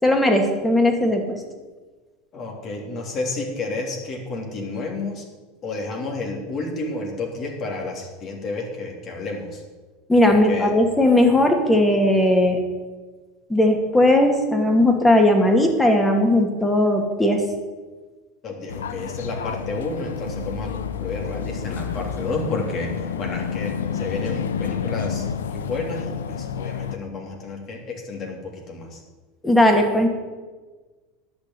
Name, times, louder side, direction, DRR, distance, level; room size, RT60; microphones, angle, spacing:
voice 1, 0.0-1.4 10.1-12.6 13.5-17.4 29.4-30.1, left 1 dB, 10° left, 3 dB, 2.4 m, -17 dB
voice 2, 2.3-5.2 5.6-9.6 10.3-10.7 18.4-29.0, left 3 dB, 45° left, 0 dB, 3.3 m, -31 dB
sound 1, 18.7-27.0, left 7 dB, 85° left, 0.6 m, -29 dB
11.0 x 6.4 x 9.3 m, 1.3 s
hypercardioid pair, 90°, 0 cm